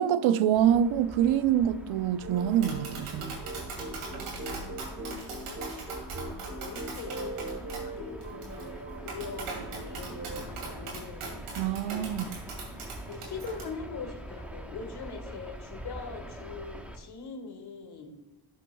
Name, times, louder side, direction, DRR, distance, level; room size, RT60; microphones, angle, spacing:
voice 1, 0.0-3.4 11.6-12.3, right 10 dB, 70° right, 0.6 m, -25 dB
sound 1, 0.5-17.0, right 1 dB, 5° right, 1.0 m, -45 dB
sound 2, 2.2-10.5, right 2 dB, 30° right, 1.9 m, -41 dB
Tap, 2.4-13.6, right 3 dB, 85° right, 2.7 m, -41 dB
voice 2, 4.3-5.7 6.3-11.3 12.0-12.3 13.1-18.1, left 5 dB, 50° left, 1.5 m, -42 dB
12.0 x 6.4 x 2.3 m
supercardioid pair, 70°, 49 cm